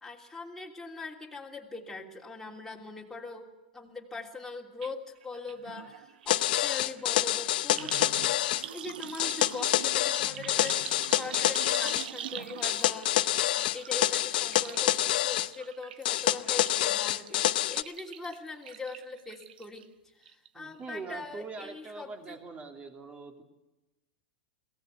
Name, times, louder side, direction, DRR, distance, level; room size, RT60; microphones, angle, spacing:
voice 1, 0.0-3.5 3.7-10.9 11.2-13.3 13.7-19.9 20.2-22.4, left 3 dB, 5° left, -2 dB, 3.0 m, -42 dB
sound 1, 4.8-4.9 5.2-19.8 20.2-20.7 21.0-21.1, right 10 dB, 75° right, 1.0 m, -44 dB
sound 2, 6.3-8.6 9.2-12.1 12.6-15.5 16.1-17.8, left 15 dB, 70° left, 0.7 m, -27 dB
voice 2, 20.5-23.4, right 4 dB, 25° right, 4 dB, 3.0 m, -42 dB
22.0 x 17.0 x 8.0 m, 1.1 s
hypercardioid pair, 120°, 5 cm